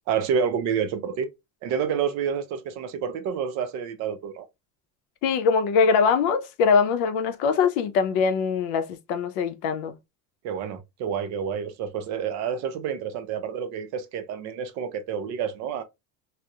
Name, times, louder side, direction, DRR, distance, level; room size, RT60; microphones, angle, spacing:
voice 1, 0.1-1.3 1.6-4.5 10.4-15.8, right 7 dB, 55° right, 0.5 m, -29 dB
voice 2, 5.2-10.0, left 5 dB, 70° left, 0.5 m, -22 dB
2.7 x 2.0 x 2.2 m
cardioid pair, 145°, 33 cm